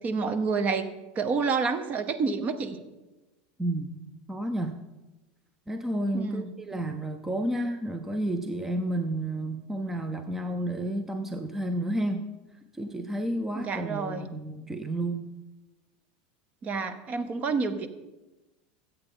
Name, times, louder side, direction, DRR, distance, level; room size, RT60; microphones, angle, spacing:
voice 1, 0.0-0.9 1.2-2.8 6.1-6.4 13.5-14.3 16.6-17.9, right 4 dB, 30° right, 11 dB, 0.8 m, -28 dB
voice 2, 3.6-4.8 5.7-12.3 12.7-15.3, right 1 dB, 5° right, 7 dB, 0.5 m, -31 dB
14.0 x 8.1 x 3.8 m, 1.1 s
supercardioid pair, 140°, 5 cm